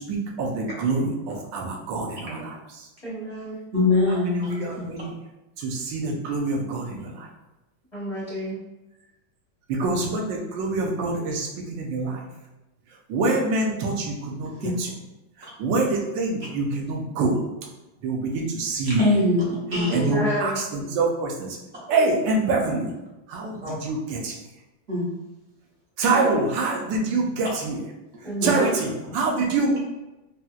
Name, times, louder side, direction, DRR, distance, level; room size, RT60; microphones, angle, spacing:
voice 1, 0.0-2.9 4.1-4.2 4.6-5.1 5.6-7.3 9.7-12.2 13.1-14.5 14.8-14.9 15.4-17.4 18.0-19.0 19.9-21.6 21.9-22.9 23.3-24.4 26.0-27.8 28.4-29.8, right 3 dB, 75° right, 0 dB, 1.2 m, -25 dB
voice 2, 3.0-3.6 7.9-8.6 19.9-20.6 28.2-28.7, right 1 dB, 30° left, -11 dB, 0.5 m, -30 dB
voice 3, 3.7-4.9 14.6-14.8 18.9-20.2 23.6-23.7 24.9-25.0 28.4-28.5, left 2 dB, 45° right, -7 dB, 0.9 m, -23 dB
4.1 x 2.1 x 2.3 m, 0.99 s
omnidirectional pair, 2.1 m